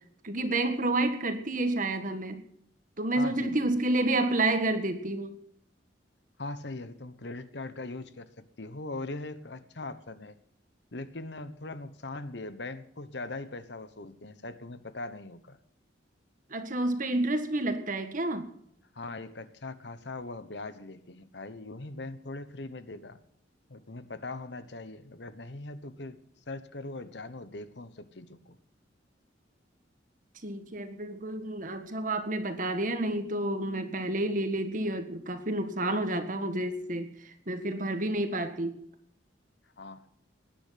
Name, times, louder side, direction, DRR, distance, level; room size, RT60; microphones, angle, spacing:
voice 1, 0.2-2.4 3.0-5.3 16.5-18.5 30.4-38.8, right 2 dB, 45° right, 8 dB, 1.7 m, -29 dB
voice 2, 3.2-3.7 6.4-10.4 10.9-15.6 18.9-23.2 23.7-26.2 26.5-28.6 39.8-40.1, left 2 dB, 65° left, 13 dB, 1.1 m, -40 dB
19.0 x 10.5 x 5.8 m, 0.68 s
head